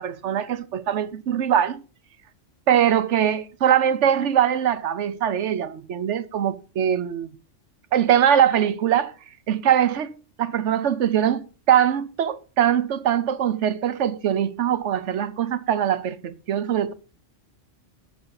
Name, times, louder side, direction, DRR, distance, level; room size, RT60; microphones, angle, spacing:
voice 1, 0.0-1.8 2.7-7.3 7.9-9.1 9.5-16.9, right 9 dB, 70° right, 1.1 m, -22 dB
18.0 x 6.8 x 4.0 m
omnidirectional pair, 1.3 m